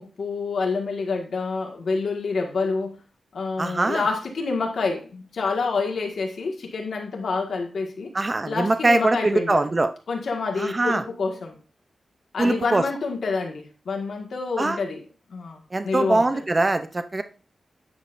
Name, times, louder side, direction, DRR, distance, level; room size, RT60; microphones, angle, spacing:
voice 1, 0.0-2.9 3.3-8.1 8.4-9.7 10.1-11.6 12.3-16.4, left 4 dB, 70° left, 1.6 m, -28 dB
voice 2, 3.6-4.0 8.1-9.9 10.6-11.0 12.4-12.8 14.6-14.8 15.7-17.2, right 2 dB, 25° right, 0.5 m, -22 dB
9.5 x 6.3 x 2.5 m
wide cardioid pair, 145°, 0 cm